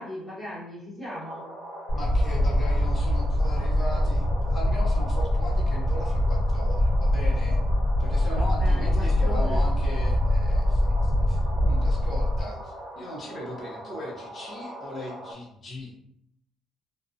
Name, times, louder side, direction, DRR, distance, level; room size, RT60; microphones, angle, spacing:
voice 1, 0.0-1.5 8.3-9.7, left 1 dB, 5° left, -13 dB, 1.0 m, -38 dB
sound 1, 1.0-15.3, right 1 dB, 55° right, 1.0 m, -41 dB
sound 2, 1.9-12.4, left 1 dB, 90° left, 0.7 m, -23 dB
voice 2, 1.9-7.6 8.0-15.9, left 1 dB, 30° left, -2 dB, 0.6 m, -38 dB
2.5 x 2.0 x 2.5 m, 0.76 s
cardioid pair, 160°, 0 cm